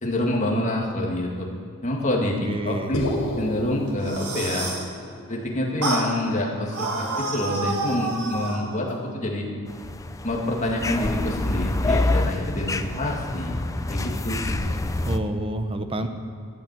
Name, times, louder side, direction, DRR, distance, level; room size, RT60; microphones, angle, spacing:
voice 1, 0.0-1.5 1.8-3.1 3.4-4.7 5.3-6.9 7.2-9.5 10.2-13.6 13.9-14.6, left 1 dB, 35° left, -2 dB, 2.0 m, -27 dB
voice 2, 2.5-2.9 15.0-16.1, right 1 dB, 25° right, 7 dB, 0.8 m, -28 dB
sound 1, 2.9-7.3, left 1 dB, 80° left, 2.6 m, -33 dB
sound 2, 3.9-4.9 5.8-6.1 6.7-8.6, right 2 dB, 80° right, 2.4 m, -28 dB
sound 3, 9.7-15.2, left 2 dB, 15° left, 0.4 m, -27 dB
12.5 x 8.5 x 7.6 m, 2.4 s
head